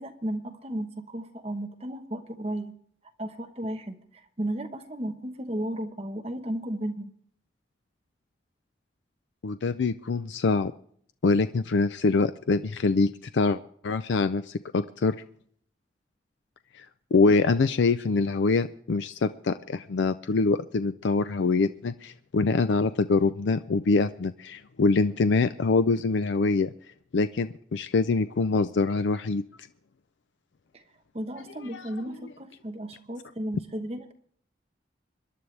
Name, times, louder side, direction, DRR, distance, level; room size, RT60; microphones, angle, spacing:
voice 1, 0.0-2.7 3.2-7.1 30.7-30.8 31.1-34.1, right 1 dB, 35° right, 6 dB, 1.0 m, -34 dB
voice 2, 9.4-10.7 11.2-15.2 16.8-16.9 17.1-26.7 27.1-29.4 31.7-31.9, left 3 dB, 80° left, 11 dB, 0.5 m, -24 dB
25.5 x 11.0 x 3.3 m, 0.62 s
head